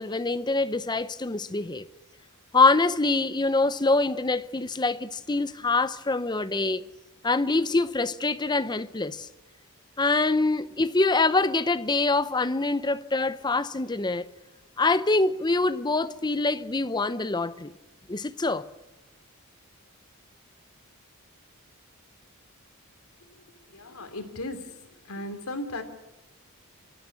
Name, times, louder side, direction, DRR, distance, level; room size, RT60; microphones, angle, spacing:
voice 1, 0.0-1.9 2.5-6.9 7.2-9.3 10.0-14.3 14.8-17.7 18.1-18.6, left 3 dB, 20° left, 0.7 m, -25 dB
voice 2, 23.7-24.7 25.1-25.8, left 1 dB, 75° left, 3.0 m, -35 dB
26.0 x 14.0 x 9.9 m
head